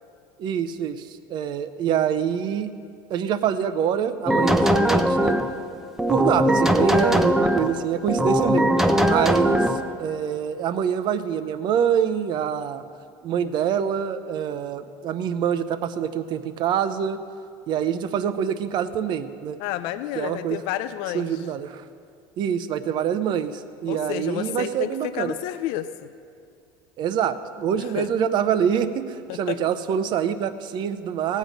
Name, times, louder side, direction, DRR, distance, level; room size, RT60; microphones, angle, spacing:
voice 1, 0.4-2.7 3.1-5.3 6.1-8.7 9.1-12.8 13.2-17.2 17.7-19.6 20.1-20.6 21.1-21.8 22.4-25.3 27.0-31.4, right 8 dB, 50° right, 12 dB, 0.7 m, -25 dB
sound 1, 4.3-5.5 6.0-7.7 8.1-9.8, equal, 5° right, 0.6 m, -20 dB
voice 2, 19.6-21.5 23.9-25.9 27.8-28.1 29.3-29.6, left 13 dB, 75° left, 11 dB, 0.5 m, -30 dB
17.0 x 8.3 x 5.2 m, 2.4 s
cardioid pair, 125°, 10 cm